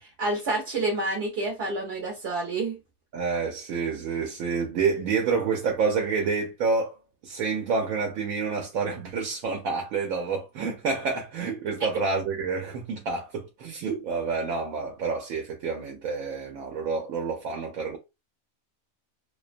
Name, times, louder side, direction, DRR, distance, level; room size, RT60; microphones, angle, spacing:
voice 1, 0.0-2.8, right 2 dB, 55° right, 0.8 m, -29 dB
voice 2, 3.1-6.9 7.2-18.0, right 5 dB, 80° right, 1.0 m, -28 dB
2.4 x 2.2 x 2.4 m
omnidirectional pair, 1.5 m